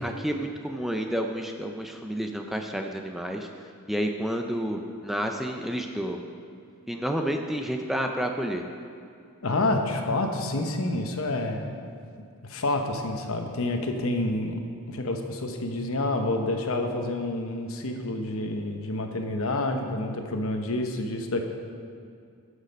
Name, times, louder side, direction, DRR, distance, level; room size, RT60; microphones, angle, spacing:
voice 1, 0.0-3.5 3.9-6.2 6.9-8.6, equal, ahead, 3 dB, 0.4 m, -30 dB
voice 2, 9.4-11.8 12.4-14.6 14.9-21.4, left 2 dB, 65° left, 4 dB, 1.0 m, -28 dB
13.0 x 6.5 x 5.3 m, 2.4 s
head